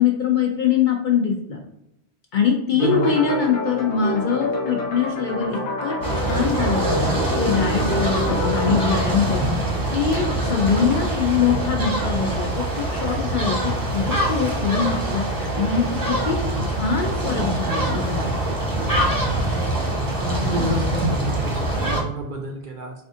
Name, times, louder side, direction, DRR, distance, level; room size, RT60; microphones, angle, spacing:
voice 1, 0.0-1.6 2.3-9.6 9.9-16.4 16.7-18.4, left 6 dB, 60° left, 1 dB, 0.5 m, -23 dB
voice 2, 2.7-3.1 19.2-19.5 20.0-22.9, right 2 dB, 60° right, 2 dB, 0.5 m, -29 dB
sound 1, 2.8-9.1, left 2 dB, 85° left, 1.0 m, -27 dB
sound 2, 6.0-22.0, right 1 dB, 20° right, 0.7 m, -24 dB
4.2 x 2.3 x 2.6 m, 0.82 s
omnidirectional pair, 1.2 m